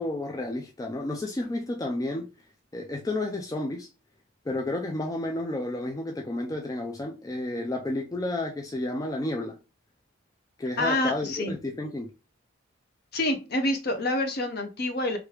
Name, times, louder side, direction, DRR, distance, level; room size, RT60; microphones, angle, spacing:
voice 1, 0.0-2.3 2.7-3.9 4.5-9.6 10.6-12.1, left 2 dB, 15° left, 0.3 m, -31 dB
voice 2, 10.8-11.5 13.1-15.2, left 1 dB, 50° left, 0.6 m, -27 dB
3.1 x 2.3 x 3.1 m
head